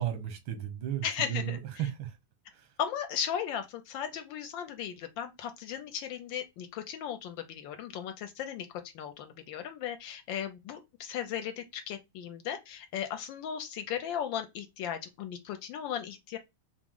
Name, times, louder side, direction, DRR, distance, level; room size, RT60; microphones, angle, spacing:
voice 1, 0.0-2.2 2.5-2.7, right 11 dB, 90° right, 1.7 m, -34 dB
voice 2, 1.0-1.6 2.8-16.4, left 9 dB, 80° left, 1.3 m, -36 dB
4.6 x 2.0 x 3.6 m
omnidirectional pair, 2.2 m